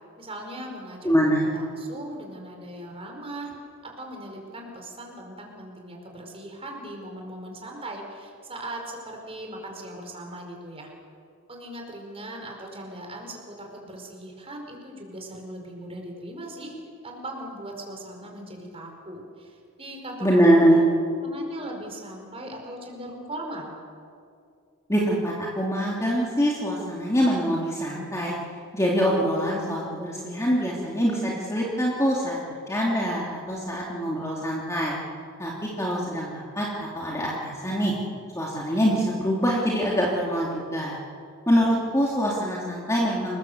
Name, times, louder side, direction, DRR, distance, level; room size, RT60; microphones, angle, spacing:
voice 1, 0.2-3.5 3.8-10.9 11.5-16.7 17.0-20.8 21.2-23.7, right 1 dB, 25° right, 1 dB, 5.0 m, -39 dB
voice 2, 1.0-1.5 20.2-20.8 24.9-28.3 28.7-32.4 32.7-35.0 35.4-37.9 38.3-41.0 41.5-43.4, equal, 15° left, -4 dB, 2.9 m, -24 dB
29.0 x 20.0 x 8.1 m, 2.4 s
head